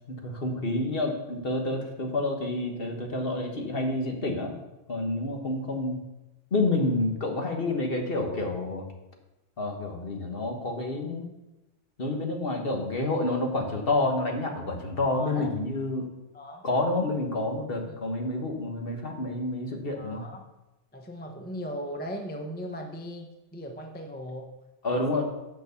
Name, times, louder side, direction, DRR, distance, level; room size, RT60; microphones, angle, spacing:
voice 1, 0.1-4.5 4.9-6.0 6.5-8.8 9.6-11.3 12.0-16.1 16.6-20.2 24.8-25.2, left 2 dB, 50° left, 2 dB, 1.6 m, -29 dB
voice 2, 15.1-15.5 16.3-16.7 17.9-18.0 19.9-20.5 20.9-24.5 24.9-25.2, equal, 10° left, 3 dB, 0.7 m, -38 dB
7.5 x 6.8 x 7.0 m, 0.99 s
omnidirectional pair, 1.3 m